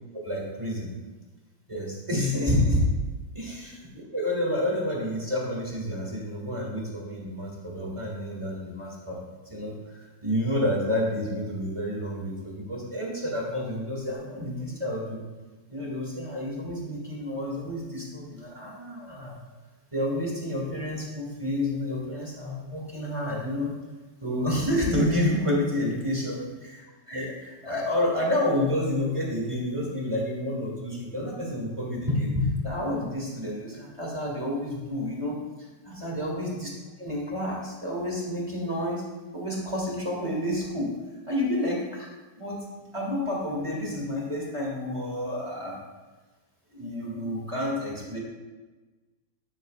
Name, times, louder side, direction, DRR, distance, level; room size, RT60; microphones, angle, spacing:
voice 1, 0.2-0.9 1.7-2.9 3.3-9.2 9.5-15.2 15.7-19.4 19.9-23.7 24.2-26.4 27.1-35.4 35.8-36.7 37.0-39.0 39.3-40.9 41.3-42.1 42.4-42.6 42.9-45.8 46.7-48.2, left 1 dB, 15° right, -3 dB, 2.3 m, -29 dB
11.5 x 11.0 x 2.5 m, 1.2 s
omnidirectional pair, 2.4 m